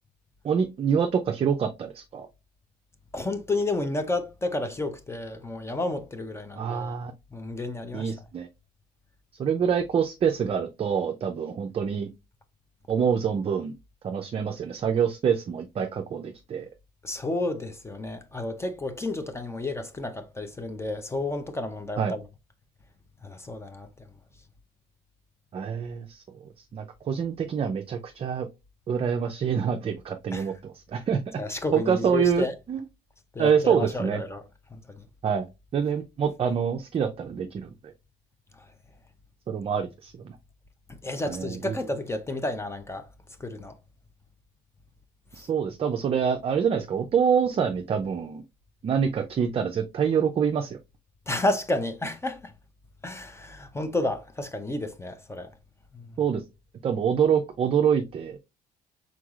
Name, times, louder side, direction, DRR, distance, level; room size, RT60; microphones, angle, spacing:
voice 1, 0.4-2.3 6.6-7.1 7.9-8.5 9.4-12.1 12.9-13.7 14.0-16.7 22.0-22.1 25.5-26.2 26.7-28.5 28.9-31.2 31.7-32.8 33.4-34.2 35.2-35.5 35.7-37.9 39.5-40.3 41.3-41.8 45.3-48.4 48.8-50.8 56.2-56.4 56.8-58.4, right 7 dB, 35° right, 0.5 m, -26 dB
voice 2, 3.1-6.9 7.3-8.1 17.0-22.2 23.2-24.1 30.3-30.5 31.4-32.5 33.3-34.4 34.7-35.1 41.0-43.1 43.4-43.7 51.3-52.5 53.0-55.5 55.9-56.1, left 2 dB, 15° left, 0.6 m, -31 dB
4.6 x 3.9 x 2.4 m
cardioid pair, 110°, 17 cm